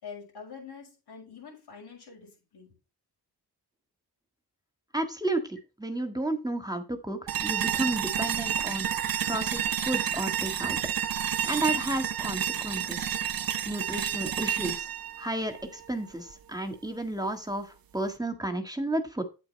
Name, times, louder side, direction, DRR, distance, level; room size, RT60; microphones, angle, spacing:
voice 1, 0.0-2.7, left 6 dB, 90° left, 6.1 m, -45 dB
voice 2, 4.9-8.9 9.3-10.8 11.5-13.1 13.6-14.9 15.2-17.7 17.9-19.2, right 1 dB, 10° right, 1.6 m, -32 dB
sound 1, 7.3-16.3, right 9 dB, 60° right, 0.9 m, -30 dB
8.8 x 8.6 x 3.2 m
cardioid pair, 75°, 39 cm